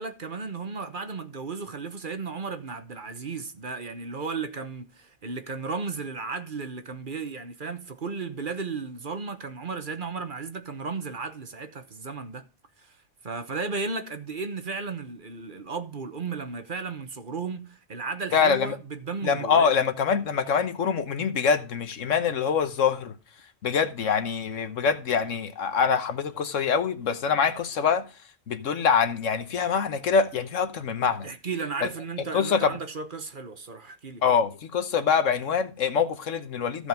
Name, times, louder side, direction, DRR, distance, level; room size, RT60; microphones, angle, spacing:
voice 1, 0.0-12.4 12.8-13.0 13.2-19.7 31.2-34.2, right 4 dB, 45° right, 1.2 m, -34 dB
voice 2, 18.3-18.7 19.2-23.1 23.6-28.0 28.5-31.3 31.8-31.9 32.3-32.8 34.2-36.9, left 6 dB, 85° left, 1.4 m, -24 dB
15.0 x 5.1 x 5.2 m
omnidirectional pair, 1.3 m